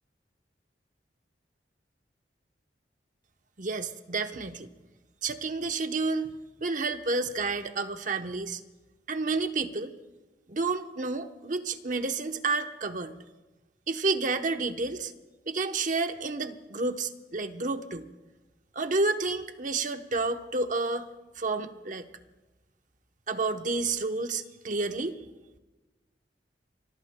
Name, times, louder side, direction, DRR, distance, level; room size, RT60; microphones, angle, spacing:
voice 1, 3.6-4.7 5.2-6.3 6.6-8.6 9.1-9.9 10.5-13.1 13.9-15.1 15.5-18.1 18.7-21.0 21.4-22.1 23.3-25.2, right 3 dB, 50° right, 7 dB, 0.9 m, -30 dB
25.5 x 22.5 x 2.2 m, 1.1 s
head